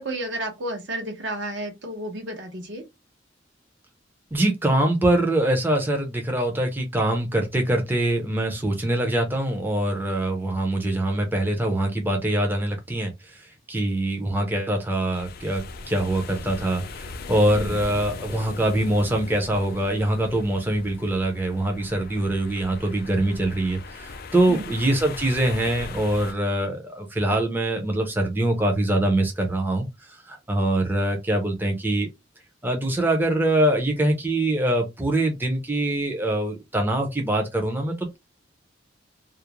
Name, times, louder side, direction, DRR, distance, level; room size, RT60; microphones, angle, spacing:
voice 1, 0.0-2.8 17.5-17.8 24.5-24.7, right 1 dB, 70° right, 0.8 m, -32 dB
voice 2, 4.3-15.6 15.9-32.1 32.6-38.2, right 1 dB, 10° right, 0.5 m, -24 dB
sound 1, 15.1-26.3, left 3 dB, 55° left, 0.4 m, -39 dB
2.4 x 2.0 x 2.9 m
head